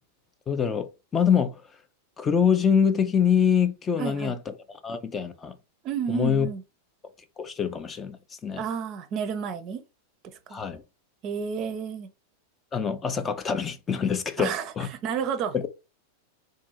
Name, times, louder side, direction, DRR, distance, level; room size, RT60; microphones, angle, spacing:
voice 1, 0.5-1.6 2.2-4.5 4.8-5.5 6.1-6.5 7.4-8.6 10.5-10.8 12.7-14.9 15.5-15.7, left 7 dB, 20° left, 0.4 m, -25 dB
voice 2, 4.0-4.3 5.8-6.6 8.6-9.8 10.5-10.6 11.2-12.1 14.4-15.5, right 7 dB, 35° right, 0.5 m, -31 dB
3.6 x 2.6 x 2.8 m
figure-of-eight pair, 90°, 0 cm